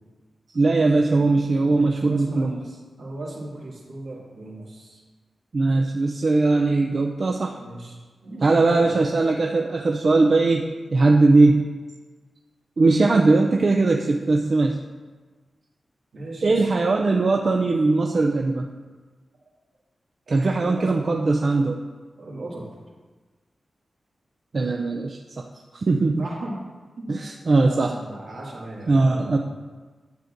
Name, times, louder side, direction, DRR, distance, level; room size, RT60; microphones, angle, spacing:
voice 1, 0.5-2.6 5.5-7.6 8.4-11.6 12.8-14.8 16.4-18.7 20.3-21.8 24.5-25.5 25.7-26.2 27.1-27.9 28.9-29.4, right 3 dB, 40° right, 2 dB, 0.4 m, -20 dB
voice 2, 1.7-2.5 3.0-5.0 7.5-8.0 8.2-8.9 16.1-16.6 20.3-21.0 22.2-22.7 26.2-26.6 27.0-29.4, right 1 dB, 70° right, -4 dB, 2.1 m, -36 dB
10.5 x 7.9 x 2.6 m, 1.4 s
wide cardioid pair, 170°, 0 cm